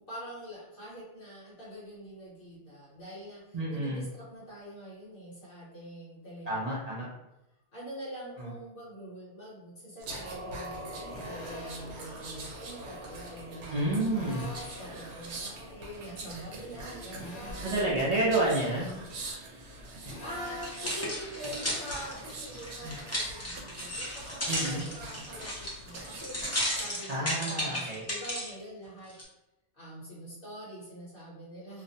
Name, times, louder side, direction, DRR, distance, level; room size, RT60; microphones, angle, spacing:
voice 1, 0.0-7.1 7.7-17.7 20.2-29.1 29.7-31.8, equal, 55° left, -6 dB, 0.8 m, -45 dB
voice 2, 3.5-4.0 6.5-7.1 8.4-8.5 13.7-14.4 17.6-18.9 24.5-24.8 27.1-28.0, right 2 dB, 55° right, -7 dB, 0.4 m, -29 dB
sound 1, 10.0-27.0 27.4-27.6, right 2 dB, 85° right, 0.9 m, -43 dB
Drill, 11.1-12.0 14.1-15.0 17.1-18.0 20.0-21.0, left 1 dB, 90° left, 0.9 m, -44 dB
sound 2, 20.5-28.5 29.1-29.2, left 1 dB, 25° left, 0.3 m, -34 dB
2.4 x 2.1 x 2.6 m, 0.96 s
omnidirectional pair, 1.2 m